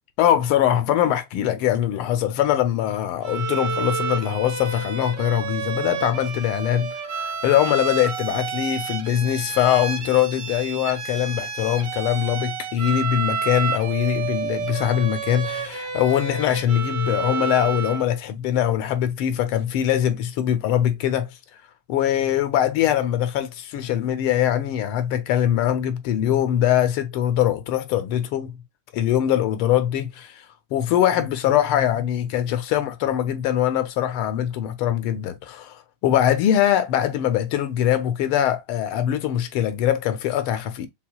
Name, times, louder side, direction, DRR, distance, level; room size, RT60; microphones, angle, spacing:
voice 1, 0.2-21.3 21.9-28.6 28.9-30.4 30.7-40.9, left 11 dB, 80° left, 1.5 m, -22 dB
Bowed string instrument, 3.2-18.1, right 6 dB, 80° right, 2.1 m, -30 dB
5.6 x 2.3 x 2.2 m
omnidirectional pair, 2.4 m